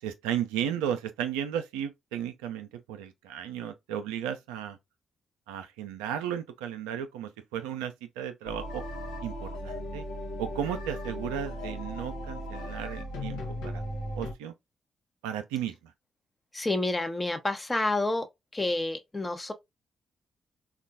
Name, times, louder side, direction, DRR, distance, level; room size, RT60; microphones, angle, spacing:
voice 1, 0.0-4.8 5.5-8.8 9.2-10.0 10.4-13.8 14.1-14.5 15.2-15.9, right 9 dB, 80° right, 0.4 m, -34 dB
sound 1, 8.4-14.3, equal, 75° left, 0.8 m, -37 dB
voice 2, 16.5-18.3 18.5-19.5, left 2 dB, 25° left, 0.8 m, -29 dB
3.6 x 2.3 x 2.6 m
hypercardioid pair, 40°, 0 cm